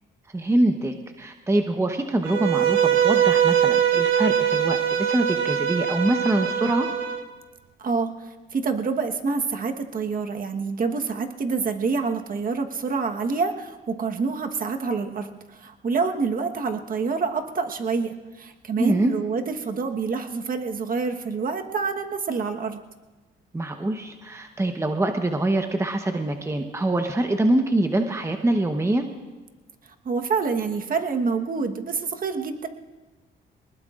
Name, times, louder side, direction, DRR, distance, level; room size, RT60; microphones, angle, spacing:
voice 1, 0.3-6.9 18.8-19.1 23.5-29.1, right 1 dB, 15° right, 5 dB, 1.0 m, -24 dB
Bowed string instrument, 2.2-7.2, right 9 dB, 80° right, 1.1 m, -22 dB
voice 2, 7.8-22.8 30.0-32.7, right 4 dB, 45° right, 5 dB, 1.3 m, -27 dB
23.0 x 20.0 x 2.5 m, 1.2 s
cardioid pair, 90°, 20 cm